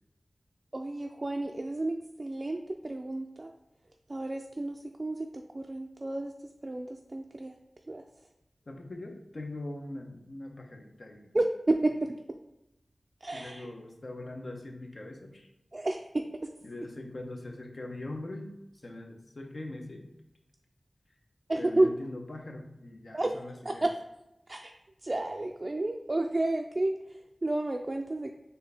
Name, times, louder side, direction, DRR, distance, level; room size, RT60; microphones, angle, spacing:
voice 1, 0.7-3.5 4.1-5.3 5.5-6.3 6.6-7.5 7.9-8.0 11.3-12.2 13.2-13.7 15.7-16.3 21.5-21.9 23.1-23.9 24.5-24.7 25.0-28.3, right 2 dB, 45° right, 3 dB, 0.3 m, -31 dB
voice 2, 8.7-11.3 13.3-15.5 16.6-18.5 18.8-20.0 21.6-23.9, left 2 dB, 60° left, 2 dB, 0.7 m, -42 dB
4.4 x 2.7 x 3.4 m, 0.91 s
cardioid pair, 45°, 0 cm